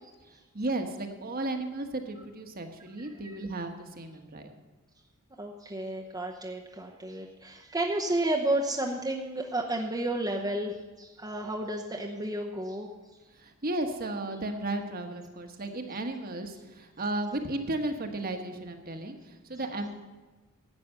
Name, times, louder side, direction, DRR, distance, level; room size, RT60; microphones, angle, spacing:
voice 1, 0.5-4.5 13.4-19.9, right 2 dB, 45° right, 5 dB, 1.2 m, -34 dB
voice 2, 5.4-12.9, right 1 dB, 15° right, 0 dB, 0.8 m, -32 dB
11.5 x 8.6 x 6.7 m, 1.2 s
head